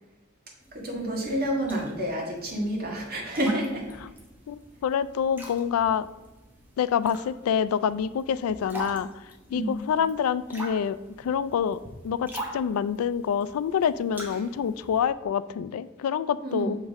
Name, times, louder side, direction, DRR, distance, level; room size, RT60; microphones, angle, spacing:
sound 1, 0.6-15.0, right 1 dB, 10° right, 1.1 m, -44 dB
voice 1, 0.7-3.9 9.5-9.8 16.4-16.7, right 1 dB, 45° right, -1 dB, 1.6 m, -29 dB
voice 2, 4.5-6.1 6.8-9.1 9.5-11.8 12.0-16.8, left 7 dB, 85° left, 16 dB, 0.3 m, -27 dB
6.4 x 5.3 x 3.5 m, 1.1 s
head